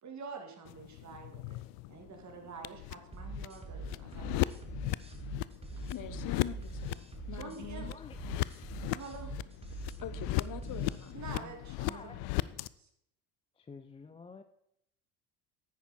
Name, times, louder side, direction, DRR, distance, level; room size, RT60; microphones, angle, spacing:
voice 1, 0.0-1.6 1.9-4.5 7.3-7.9 8.8-9.6 11.1-12.4 12.8-12.9, right 4 dB, 40° right, 3 dB, 2.3 m, -47 dB
sound 1, 0.7-12.7, left 20 dB, 75° left, 0.5 m, -38 dB
sound 2, 3.1-11.1, right 4 dB, 15° right, 1.6 m, -44 dB
voice 2, 5.9-7.9 10.0-11.2, left 10 dB, 45° left, 13 dB, 1.0 m, -43 dB
voice 3, 7.8-8.2 10.8-12.3 13.6-14.4, left 4 dB, 15° left, 10 dB, 0.4 m, -51 dB
9.3 x 9.3 x 4.3 m, 0.76 s
supercardioid pair, 85°, 44 cm